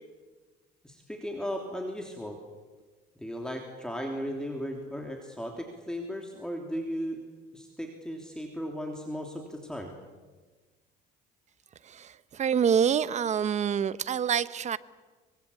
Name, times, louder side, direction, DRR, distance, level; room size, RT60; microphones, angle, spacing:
voice 1, 0.8-2.4 3.2-7.2 7.5-9.9, equal, 5° left, 2 dB, 3.2 m, -36 dB
voice 2, 11.8-14.8, right 8 dB, 45° right, 16 dB, 1.0 m, -26 dB
24.5 x 23.5 x 8.6 m, 1.3 s
cardioid pair, 110°, 17 cm